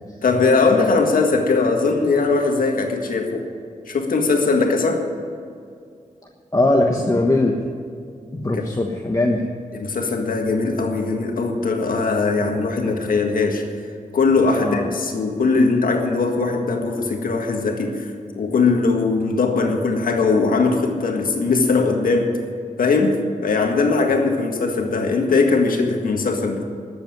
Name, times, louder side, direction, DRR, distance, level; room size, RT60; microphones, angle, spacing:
voice 1, 0.2-3.5 3.9-5.0 8.5-8.6 9.7-13.6 14.1-22.3 22.8-26.7, left 4 dB, 85° left, 3 dB, 1.8 m, -20 dB
voice 2, 6.5-7.7 8.3-9.4 14.6-14.9, left 2 dB, 25° left, 1 dB, 1.2 m, -20 dB
12.5 x 8.3 x 9.5 m, 2.3 s
cardioid pair, 70°, 14 cm